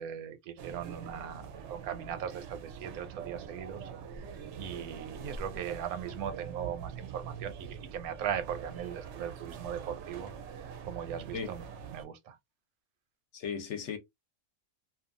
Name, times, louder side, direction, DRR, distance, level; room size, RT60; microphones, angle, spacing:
voice 1, 0.0-10.3 10.9-12.4, right 9 dB, 90° right, 1.1 m, -39 dB
sound 1, 0.6-12.0, right 7 dB, 65° right, 0.8 m, -44 dB
voice 2, 13.3-14.0, left 6 dB, 65° left, 0.8 m, -36 dB
2.8 x 2.3 x 2.4 m
omnidirectional pair, 1.5 m